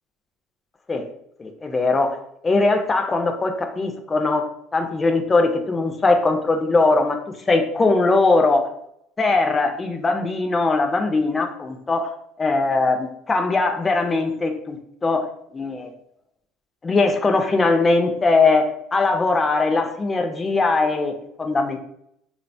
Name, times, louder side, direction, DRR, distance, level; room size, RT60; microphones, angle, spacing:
voice 1, 1.4-2.2 2.4-8.7 9.2-12.1 12.4-14.8 15.0-15.2 15.5-15.9 16.8-21.8, left 3 dB, 20° left, 5 dB, 0.3 m, -20 dB
2.8 x 2.1 x 2.6 m, 0.73 s
supercardioid pair, 105°, 0 cm